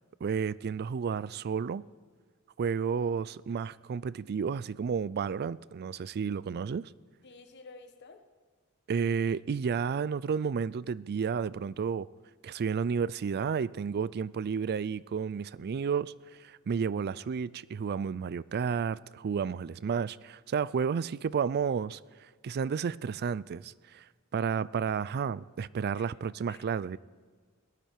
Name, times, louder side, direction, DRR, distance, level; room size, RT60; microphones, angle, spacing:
voice 1, 0.2-1.8 2.6-6.9 8.9-12.1 12.4-16.1 16.4-22.0 22.4-24.0 24.3-27.0, right 6 dB, 45° right, 0.3 m, -31 dB
voice 2, 7.2-8.2 25.9-26.1 26.5-26.6, left 3 dB, 50° left, 1.2 m, -51 dB
18.5 x 12.5 x 4.5 m
head